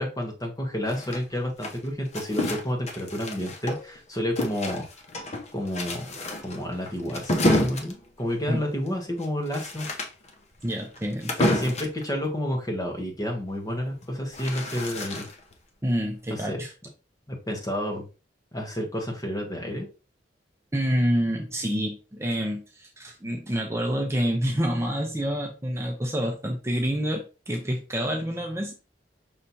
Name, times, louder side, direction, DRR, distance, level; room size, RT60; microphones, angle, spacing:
voice 1, 0.0-4.8 5.5-6.1 6.4-9.9 11.4-15.3 16.3-16.6 17.3-18.0 18.5-19.9, equal, 20° left, 0 dB, 1.2 m, -30 dB
sound 1, 0.9-4.0 4.4-12.0 13.9-15.5, left 1 dB, 40° left, 0.7 m, -30 dB
voice 2, 10.6-11.7 15.8-16.7 20.7-28.7, equal, 15° right, 1 dB, 0.6 m, -28 dB
5.6 x 3.2 x 2.7 m, 0.31 s
head